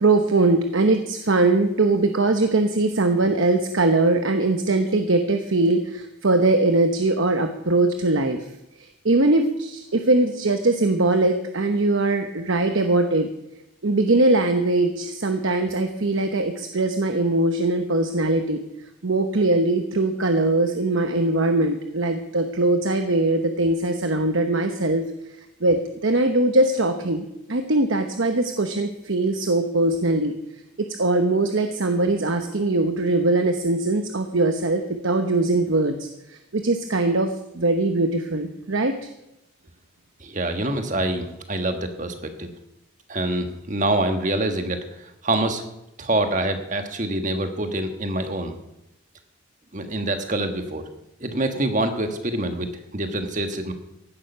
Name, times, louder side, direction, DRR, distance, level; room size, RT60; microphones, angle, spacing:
voice 1, 0.0-8.4 8.8-13.3 13.8-18.6 19.0-25.0 25.6-30.3 30.8-39.0, right 2 dB, 65° right, 6 dB, 1.0 m, -21 dB
voice 2, 40.2-42.5 43.1-45.6 46.0-48.5 49.7-50.8 51.2-53.7, right 1 dB, 35° right, 6 dB, 1.4 m, -26 dB
16.0 x 11.5 x 5.6 m, 0.88 s
head